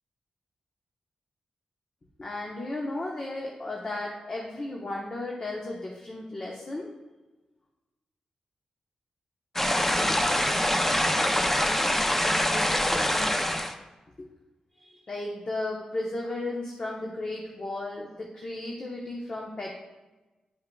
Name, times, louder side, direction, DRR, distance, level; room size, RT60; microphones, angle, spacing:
voice 1, 2.2-6.9 14.2-14.3 14.8-19.7, left 2 dB, 40° left, -1 dB, 0.9 m, -34 dB
sound 1, 9.6-13.7, left 1 dB, 15° left, 0.5 m, -24 dB
10.5 x 5.6 x 2.3 m, 1.1 s
wide cardioid pair, 100°, 2 cm